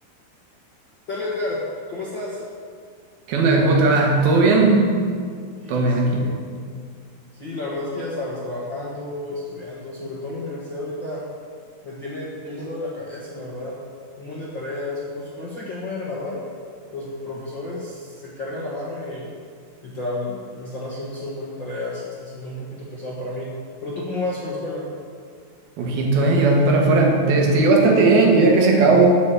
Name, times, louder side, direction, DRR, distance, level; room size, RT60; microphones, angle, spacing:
voice 1, 1.1-2.4 5.5-6.4 7.4-11.2 11.8-13.7 14.2-16.4 16.9-19.3 19.8-23.5 23.8-24.8, left 2 dB, 50° left, -6 dB, 1.4 m, -31 dB
voice 2, 3.3-4.9 5.7-6.3 25.8-29.2, right 3 dB, 75° right, 0 dB, 3.3 m, -16 dB
9.3 x 8.2 x 7.6 m, 2.1 s
omnidirectional pair, 4.4 m